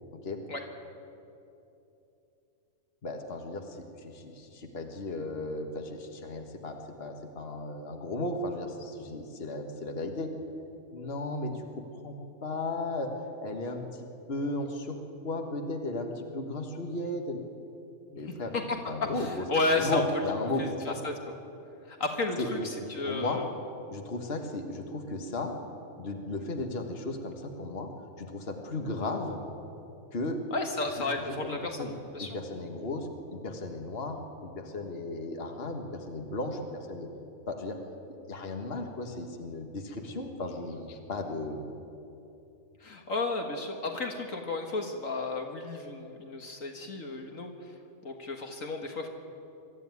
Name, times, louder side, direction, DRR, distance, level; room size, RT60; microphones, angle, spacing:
voice 1, 3.0-10.3 10.9-12.1 12.4-13.1 13.4-13.8 14.3-15.0 15.2-17.4 18.1-19.4 19.7-21.0 22.4-23.4 23.9-25.5 26.0-27.9 28.2-29.4 30.1-30.4 31.3-31.9 32.2-37.1 37.5-37.8 38.3-41.6, left 2 dB, 45° left, 4 dB, 1.8 m, -35 dB
voice 2, 18.5-20.0 20.6-21.1 21.9-23.5 30.5-32.4 42.8-47.5 48.0-49.1, left 3 dB, 65° left, 3 dB, 1.9 m, -32 dB
23.0 x 13.5 x 9.5 m, 2.8 s
omnidirectional pair, 1.5 m